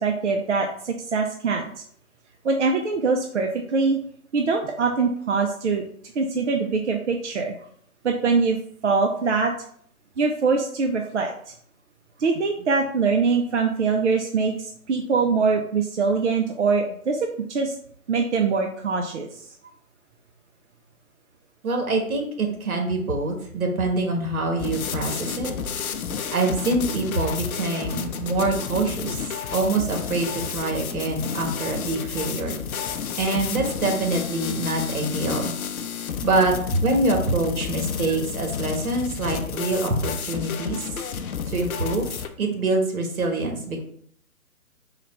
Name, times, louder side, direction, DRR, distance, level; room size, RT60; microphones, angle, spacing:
voice 1, 0.0-1.6 2.4-4.0 4.3-5.8 6.2-7.5 8.0-8.6 8.8-9.5 10.2-11.3 12.2-17.2 17.5-17.7 18.1-19.4, right 4 dB, 55° right, 3 dB, 0.5 m, -23 dB
voice 2, 21.6-25.5 26.3-29.2 29.5-32.6 33.2-35.5 36.2-40.9 41.5-42.1 42.4-43.8, right 2 dB, 70° right, 2 dB, 1.3 m, -25 dB
sound 1, 24.6-42.3, left 7 dB, 70° left, 0.6 m, -31 dB
3.9 x 2.2 x 4.2 m, 0.62 s
figure-of-eight pair, 145°, 44 cm